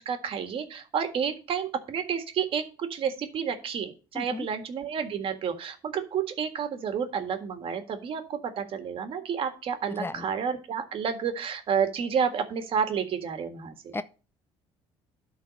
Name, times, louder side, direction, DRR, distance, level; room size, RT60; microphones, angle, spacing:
voice 1, 0.0-13.9, right 7 dB, 55° right, 1.7 m, -30 dB
voice 2, 4.1-4.5 10.0-10.3 13.9-14.0, left 3 dB, 20° left, 0.6 m, -34 dB
12.0 x 4.1 x 5.2 m
supercardioid pair, 85°, 11 cm